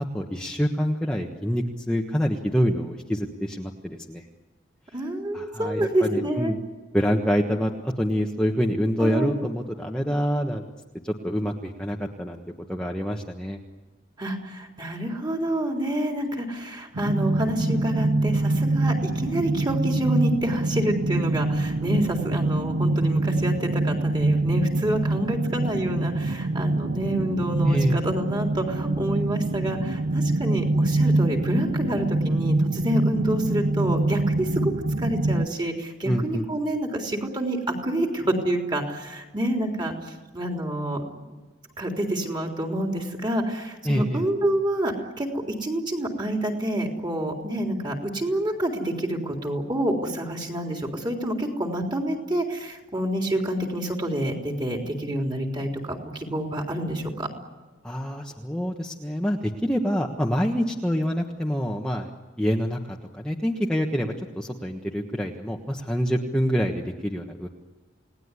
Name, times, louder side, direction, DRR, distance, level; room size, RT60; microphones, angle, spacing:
voice 1, 0.0-4.2 5.3-6.6 6.9-10.6 11.0-12.4 12.7-13.6 27.6-28.0 36.0-36.4 43.8-44.2 57.8-62.1 62.4-67.5, equal, 5° left, 0 dB, 1.4 m, -26 dB
voice 2, 4.9-6.5 9.0-9.3 14.2-34.7 35.0-39.9 40.3-41.0 41.8-57.3, right 1 dB, 25° right, 1 dB, 3.8 m, -28 dB
sound 1, 16.9-35.5, right 2 dB, 80° right, 0.8 m, -25 dB
29.5 x 19.0 x 9.9 m, 1.3 s
head